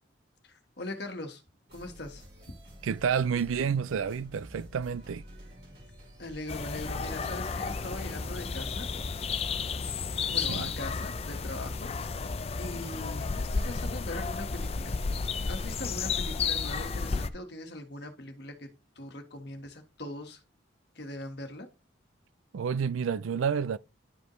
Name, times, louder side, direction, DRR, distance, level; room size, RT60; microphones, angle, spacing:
voice 1, 0.4-1.4 1.7-2.3 6.2-8.9 10.3-11.9 12.6-15.0 15.5-18.7 18.9-20.4 20.9-21.7, left 1 dB, 55° left, 1.5 m, -41 dB
sound 1, 1.7-10.4, equal, 50° right, 3.3 m, -50 dB
voice 2, 2.8-5.2 10.4-10.7 22.5-23.8, right 6 dB, 85° right, 0.4 m, -29 dB
sound 2, 6.5-17.3, left 4 dB, 30° left, 0.4 m, -32 dB
11.0 x 5.2 x 3.1 m
head